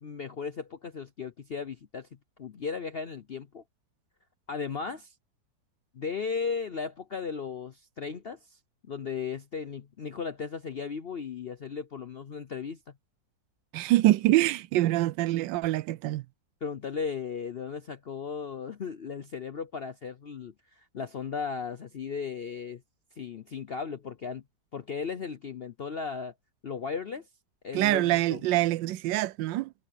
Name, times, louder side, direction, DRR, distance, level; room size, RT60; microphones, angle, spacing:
voice 1, 0.0-2.1 2.4-3.6 4.5-5.1 5.9-8.6 8.9-12.8 16.6-22.8 23.2-24.4 24.7-26.3 26.6-27.3 27.6-28.4, left 5 dB, 60° left, 0.6 m, -36 dB
voice 2, 13.7-16.2 27.7-29.7, right 16 dB, 85° right, 1.3 m, -25 dB
omnidirectional pair, 1.9 m